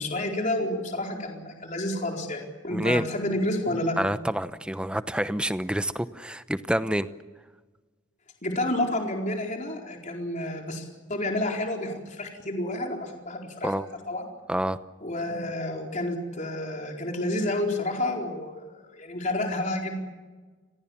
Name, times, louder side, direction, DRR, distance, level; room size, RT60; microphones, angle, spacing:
voice 1, 0.0-4.0 8.4-13.7 14.1-14.3 15.0-19.9, left 1 dB, 40° left, 1 dB, 4.5 m, -30 dB
voice 2, 2.7-3.1 4.0-7.1 13.6-13.9 14.5-14.8, right 1 dB, 5° right, 12 dB, 0.9 m, -27 dB
30.0 x 22.0 x 7.3 m, 1.3 s
head